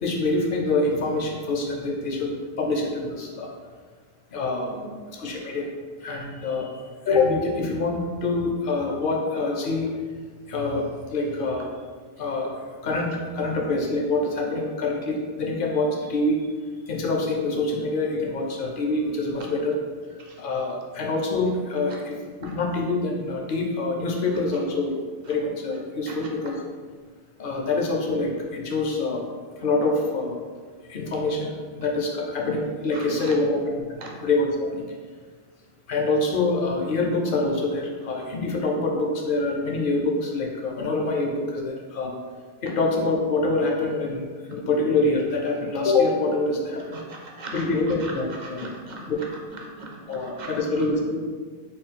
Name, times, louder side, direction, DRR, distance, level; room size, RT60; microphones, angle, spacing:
voice 1, 0.0-2.3 2.6-3.5 4.3-4.7 5.1-5.7 6.0-9.9 10.5-11.7 12.2-12.5 12.8-16.5 16.9-19.8 20.4-25.0 25.3-26.6 27.4-29.2 29.6-30.4 30.9-34.8 35.9-42.1 42.6-47.0 47.5-48.7 49.1-49.2 50.1-51.2, left 2 dB, 60° left, 0 dB, 0.8 m, -25 dB
voice 2, 32.9-33.3 34.0-34.1 46.9-47.6 48.6-49.0 49.8-50.5, right 3 dB, 50° right, -1 dB, 0.7 m, -39 dB
3.6 x 2.3 x 4.1 m, 1.5 s
omnidirectional pair, 1.1 m